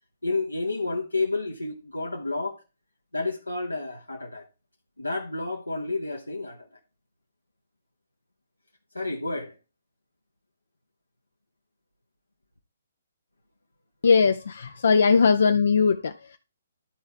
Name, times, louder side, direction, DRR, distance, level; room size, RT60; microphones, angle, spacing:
voice 1, 0.2-2.6 3.1-4.5 5.0-6.7 8.9-9.5, left 3 dB, 80° left, 1.0 m, -30 dB
voice 2, 14.0-16.4, left 5 dB, 55° left, 0.5 m, -20 dB
12.5 x 4.4 x 3.4 m
figure-of-eight pair, 130°, 0 cm